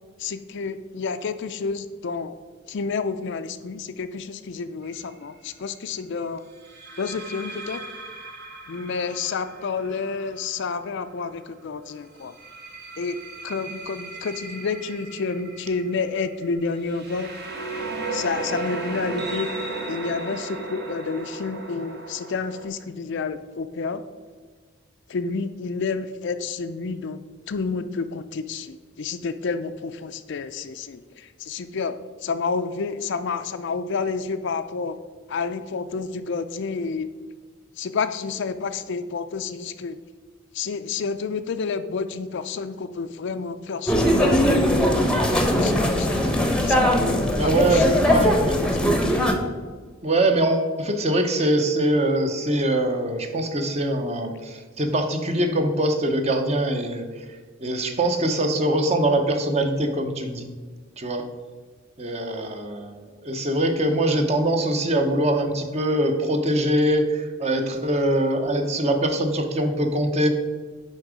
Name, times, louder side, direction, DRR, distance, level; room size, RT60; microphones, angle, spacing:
voice 1, 0.2-2.4 2.7-6.4 7.0-7.8 8.7-12.3 13.0-13.2 13.4-17.3 18.1-19.5 19.9-24.0 25.1-27.2 27.5-32.0 32.2-35.0 35.3-37.1 37.8-40.0 40.5-45.0 45.6-48.9, left 4 dB, 60° left, 10 dB, 0.4 m, -29 dB
sound 1, 4.8-5.1 6.6-11.4 12.2-22.7, right 2 dB, 50° right, 1.1 m, -36 dB
sound 2, 43.9-49.3, equal, 5° left, 0.8 m, -20 dB
voice 2, 47.4-48.5 50.0-57.1 57.6-60.5 61.0-61.2 62.0-70.3, right 1 dB, 30° right, 5 dB, 0.8 m, -23 dB
9.8 x 3.7 x 5.0 m, 1.5 s
head